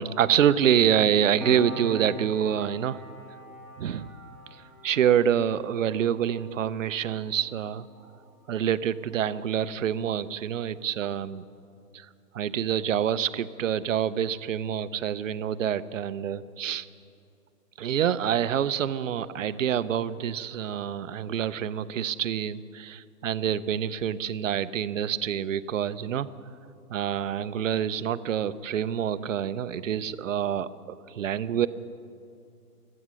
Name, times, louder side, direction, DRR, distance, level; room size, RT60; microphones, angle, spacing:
voice 1, 0.0-3.0 3.8-7.9 8.5-11.5 11.9-12.1 12.3-16.9 17.8-26.3 26.9-30.7 31.1-31.7, right 9 dB, 55° right, 14 dB, 0.6 m, -27 dB
Piano, 1.4-8.4 8.7-8.9, equal, 15° left, 1.2 m, -42 dB
25.0 x 8.7 x 6.2 m, 2.6 s
hypercardioid pair, 160°, 47 cm